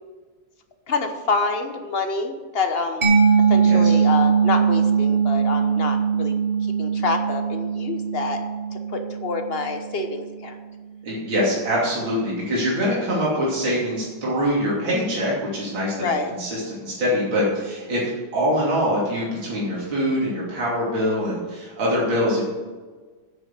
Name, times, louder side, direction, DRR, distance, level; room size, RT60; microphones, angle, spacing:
voice 1, 0.9-3.0 3.5-6.3 6.6-8.4 8.9-10.6 16.0-16.3, left 4 dB, 45° left, 6 dB, 0.8 m, -27 dB
Mallet percussion, 3.0-10.4, right 6 dB, 30° right, 1.9 m, -21 dB
voice 2, 3.6-3.9 11.0-16.1 16.4-22.4, equal, 65° right, -7 dB, 3.8 m, -24 dB
9.6 x 7.2 x 6.6 m, 1.4 s
omnidirectional pair, 2.3 m